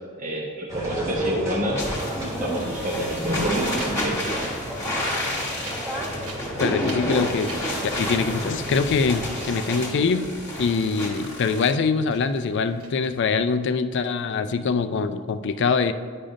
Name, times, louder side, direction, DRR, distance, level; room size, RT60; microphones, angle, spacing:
voice 1, 0.2-1.8 2.2-4.3, right 1 dB, 35° right, -3 dB, 0.6 m, -29 dB
sound 1, 0.7-10.8, right 1 dB, 15° right, 1.0 m, -32 dB
sound 2, 1.7-11.7, left 1 dB, 15° left, 1.1 m, -30 dB
Wind, 3.5-13.4, right 1 dB, 90° right, 1.2 m, -43 dB
voice 2, 6.6-7.5 7.8-10.2 10.6-15.9, left 5 dB, 50° left, 10 dB, 0.3 m, -23 dB
10.0 x 5.0 x 2.6 m, 2.1 s
head